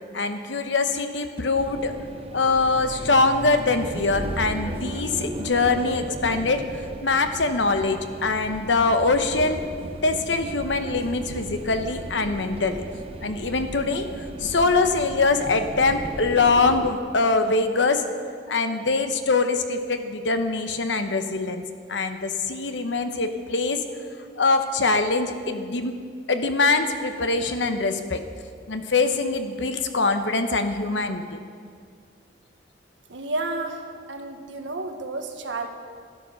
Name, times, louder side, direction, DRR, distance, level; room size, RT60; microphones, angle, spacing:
voice 1, 0.1-1.9 2.3-6.6 7.0-9.6 10.0-12.8 13.2-14.0 14.4-18.0 18.5-21.6 21.9-23.8 24.4-25.9 26.3-28.2 28.7-31.4, left 3 dB, 75° left, 7 dB, 1.0 m, -23 dB
sound 1, 1.6-16.9, right 1 dB, 30° right, 0.7 m, -36 dB
voice 2, 33.1-35.7, right 2 dB, 80° right, 4 dB, 1.3 m, -31 dB
12.5 x 12.0 x 5.9 m, 2.1 s
head